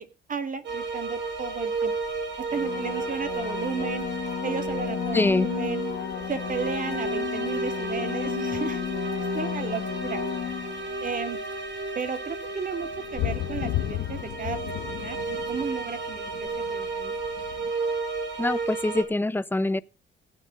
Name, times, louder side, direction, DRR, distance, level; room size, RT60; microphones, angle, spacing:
voice 1, 0.0-1.9 2.5-4.0 4.4-5.8 6.3-8.9 9.3-10.2 11.0-11.4 12.0-14.6 14.9-17.1, right 5 dB, 40° right, 2.3 m, -34 dB
sound 1, 0.6-19.0, right 3 dB, 65° right, 4.2 m, -33 dB
sound 2, 1.3-17.7, left 15 dB, 90° left, 0.8 m, -38 dB
sound 3, 2.5-11.1 16.5-16.6, left 10 dB, 70° left, 1.4 m, -33 dB
voice 2, 5.1-5.5 18.4-19.8, left 2 dB, 10° left, 0.7 m, -24 dB
15.5 x 8.9 x 5.1 m
cardioid pair, 90°, 20 cm